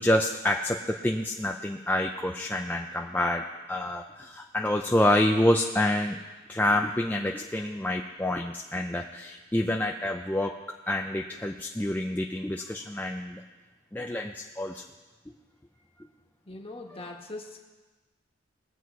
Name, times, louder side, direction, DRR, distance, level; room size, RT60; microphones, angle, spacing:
voice 1, 0.0-6.2 6.5-10.6 10.9-13.4 13.9-14.8, left 1 dB, 10° left, 2 dB, 0.5 m, -27 dB
voice 2, 16.4-17.6, left 2 dB, 30° left, 1 dB, 1.5 m, -41 dB
20.5 x 7.8 x 4.7 m, 1.3 s
head